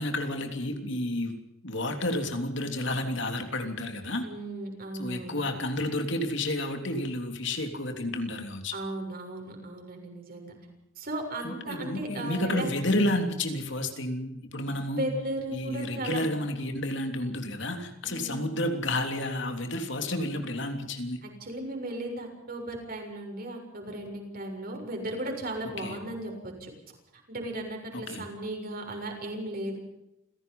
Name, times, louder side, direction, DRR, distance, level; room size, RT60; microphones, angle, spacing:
voice 1, 0.0-1.4 1.6-4.2 5.0-8.8 11.4-15.1 15.5-21.2 25.8-26.0 27.9-28.2, left 1 dB, 60° left, 6 dB, 3.3 m, -31 dB
voice 2, 4.2-5.4 8.7-10.6 11.0-12.7 14.9-16.3 18.0-18.5 21.2-26.7 27.3-29.8, right 1 dB, 45° right, 2 dB, 7.1 m, -36 dB
29.0 x 17.5 x 5.6 m, 0.89 s
head